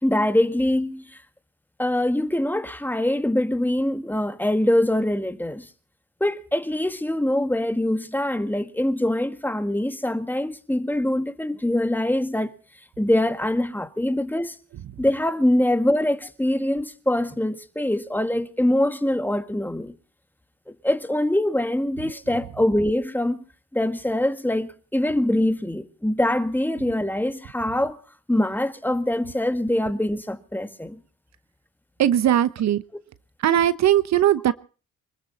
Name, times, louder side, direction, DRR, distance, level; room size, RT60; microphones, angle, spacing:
voice 1, 0.0-1.2 1.8-5.7 6.2-12.5 13.0-14.6 15.0-19.9 20.7-23.4 23.7-28.0 28.3-31.0, left 1 dB, 5° left, 1.8 m, -23 dB
voice 2, 32.0-32.8 33.4-34.5, right 11 dB, 65° right, 0.9 m, -19 dB
25.0 x 13.5 x 4.2 m
cardioid pair, 90°, 30 cm